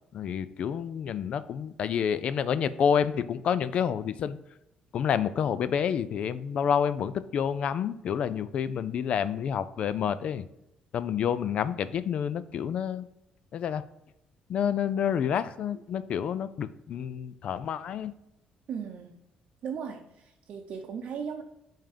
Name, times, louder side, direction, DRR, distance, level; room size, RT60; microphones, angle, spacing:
voice 1, 0.1-4.4 4.9-10.4 10.9-13.1 13.5-13.8 14.5-18.1, left 8 dB, 50° left, 14 dB, 0.3 m, -28 dB
voice 2, 18.7-19.1 19.6-21.4, right 7 dB, 55° right, 1 dB, 0.7 m, -37 dB
5.5 x 3.6 x 5.2 m, 0.86 s
cardioid pair, 135°, 2 cm